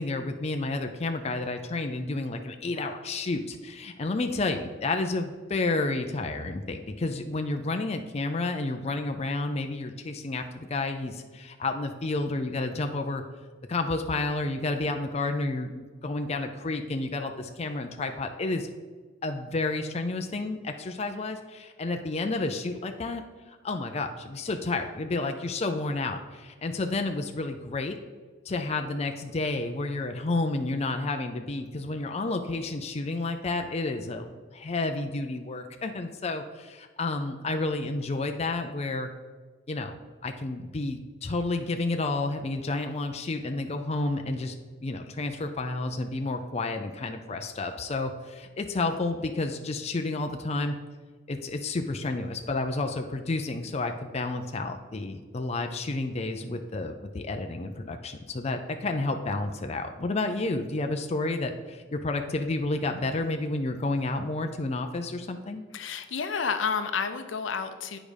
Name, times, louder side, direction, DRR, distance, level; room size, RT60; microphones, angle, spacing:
voice 1, 0.0-13.2 13.7-18.7 19.2-23.2 23.6-28.0 28.5-39.1 39.7-40.0 40.2-44.5 44.8-50.7 51.3-65.6, left 2 dB, 35° left, 6 dB, 0.5 m, -30 dB
voice 2, 65.7-68.0, left 6 dB, 75° left, 9 dB, 0.7 m, -30 dB
8.6 x 5.0 x 5.1 m, 1.4 s
head